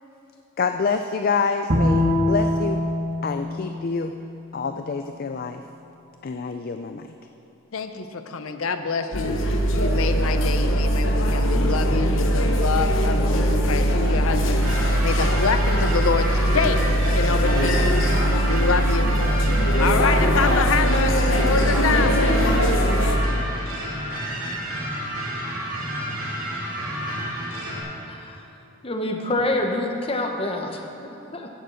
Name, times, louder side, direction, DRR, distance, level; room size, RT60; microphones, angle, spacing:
voice 1, 0.6-2.8 3.2-4.1 4.5-5.6 6.2-7.1, left 5 dB, 45° left, 7 dB, 0.4 m, -26 dB
Bowed string instrument, 1.7-5.0, left 1 dB, 65° right, 1.8 m, -24 dB
voice 2, 7.7-16.9 17.2-18.0 18.5-19.1 19.7-22.2, left 5 dB, 85° left, 8 dB, 0.6 m, -26 dB
sound 1, 9.1-23.2, equal, 65° left, 1.1 m, -21 dB
sound 2, 14.6-27.8, equal, 85° right, 3.4 m, -30 dB
voice 3, 28.1-28.4 28.8-31.5, left 1 dB, 25° left, 2 dB, 1.1 m, -27 dB
16.5 x 6.8 x 6.4 m, 2.8 s
head